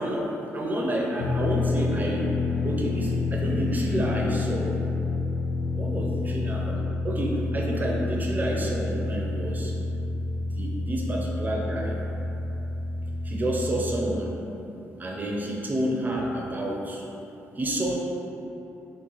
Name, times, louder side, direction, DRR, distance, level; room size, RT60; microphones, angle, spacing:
voice 1, 0.0-2.3 2.6-4.7 5.8-9.7 10.5-12.0 13.2-14.3 15.0-17.0 17.6-18.0, right 1 dB, 30° right, -1 dB, 0.6 m, -29 dB
sound 1, 1.2-13.9, left 3 dB, 55° left, 0.5 m, -28 dB
3.9 x 2.1 x 3.1 m, 3.0 s
supercardioid pair, 65°, 6 cm